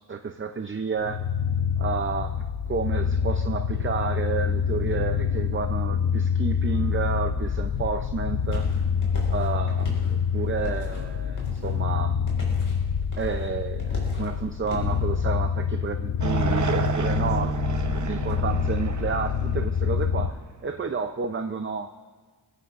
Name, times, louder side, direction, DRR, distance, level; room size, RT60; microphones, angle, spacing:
voice 1, 0.1-1.2 1.8-8.7 9.3-12.2 13.2-20.4 20.6-21.9, right 5 dB, 30° right, 7 dB, 0.6 m, -31 dB
sound 1, 1.0-20.3, left 7 dB, 80° left, 0.8 m, -26 dB
sound 2, 7.7-15.0, left 1 dB, 50° left, 5.1 m, -37 dB
sound 3, 16.2-20.6, right 5 dB, 45° right, 1.0 m, -30 dB
22.5 x 16.5 x 2.5 m, 1.5 s
wide cardioid pair, 120°, 40 cm